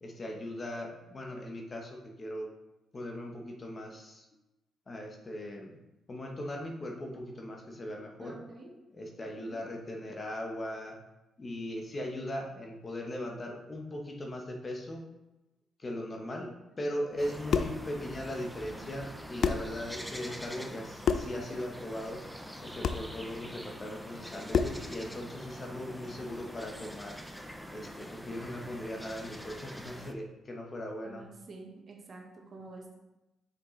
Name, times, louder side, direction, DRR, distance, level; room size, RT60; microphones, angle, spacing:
voice 1, 0.0-2.5 2.9-4.2 4.9-5.8 6.1-8.4 8.9-11.0 11.4-15.0 15.8-16.5 16.8-27.1 27.7-31.2, left 1 dB, 35° left, 1 dB, 1.0 m, -39 dB
voice 2, 8.2-8.7 9.3-9.6 16.2-16.4 31.0-33.0, right 3 dB, 45° right, 0 dB, 1.2 m, -49 dB
sound 1, 17.2-30.1, equal, ahead, 0.5 m, -45 dB
sound 2, 17.5-17.8 19.0-19.1 19.4-19.7 21.0-21.4 22.8-23.1 24.5-24.9, left 6 dB, 60° left, 0.4 m, -28 dB
6.3 x 5.2 x 3.2 m, 0.98 s
cardioid pair, 90°, 0 cm